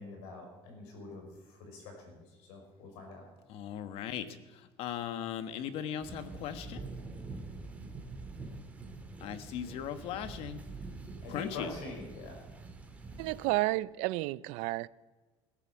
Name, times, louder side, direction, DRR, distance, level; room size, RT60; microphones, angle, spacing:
voice 1, 0.0-1.3 1.6-3.2 11.2-12.4, left 3 dB, 85° left, 5.9 m, -45 dB
voice 2, 3.5-4.4 4.8-6.9 9.2-10.6 11.3-11.7, left 9 dB, 60° left, 1.3 m, -38 dB
sound 1, 6.0-13.5, right 3 dB, 10° right, 1.8 m, -45 dB
voice 3, 13.2-14.9, right 20 dB, 80° right, 0.5 m, -31 dB
17.5 x 11.0 x 7.3 m
cardioid pair, 155°, 11 cm